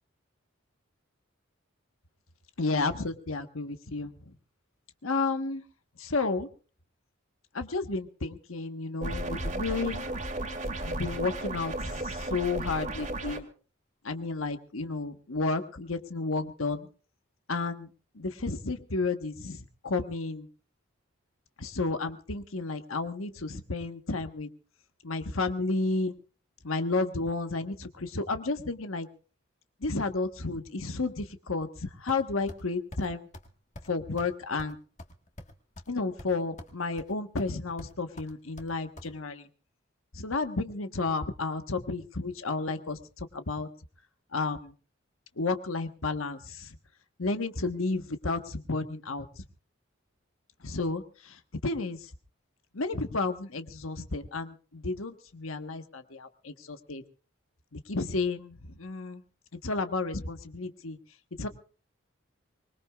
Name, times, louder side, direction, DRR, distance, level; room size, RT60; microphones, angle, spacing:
voice 1, 2.6-4.1 5.0-5.6 6.0-6.5 7.5-10.1 10.8-13.4 14.0-16.9 17.5-17.9 18.1-20.5 21.6-24.5 25.0-26.1 26.6-29.1 29.8-33.3 33.9-34.8 35.9-39.4 40.1-43.7 44.3-44.7 45.4-46.7 47.2-49.3 50.6-51.4 51.6-52.0 52.7-57.0 57.7-59.2 59.6-61.0 61.4-61.5, left 3 dB, 90° left, 8 dB, 1.4 m, -32 dB
sound 1, 9.0-13.4, right 1 dB, 40° right, 2.3 m, -34 dB
sound 2, 32.1-32.6 32.9-33.1 33.3-33.5 33.8-33.9 34.2-34.3 34.6-35.9 36.2-36.7 37.0-37.5 37.8-39.1, left 1 dB, 35° left, 1.6 m, -45 dB
24.5 x 21.0 x 2.4 m, 0.39 s
head